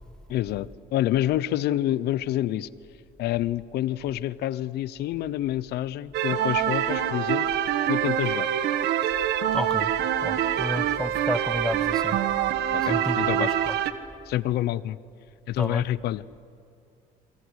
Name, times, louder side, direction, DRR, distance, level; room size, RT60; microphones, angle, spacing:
voice 1, 0.3-2.7 3.2-7.5 7.9-8.5 12.7-13.5 14.3-15.0 15.5-16.4, left 13 dB, 75° left, 18 dB, 0.8 m, -27 dB
sound 1, 6.1-13.9, right 10 dB, 80° right, 1.5 m, -25 dB
voice 2, 9.5-9.9 10.2-12.2 12.8-13.5 15.6-15.8, left 1 dB, 5° left, 14 dB, 1.0 m, -31 dB
28.5 x 24.0 x 8.2 m, 2.4 s
cardioid pair, 110°, 17 cm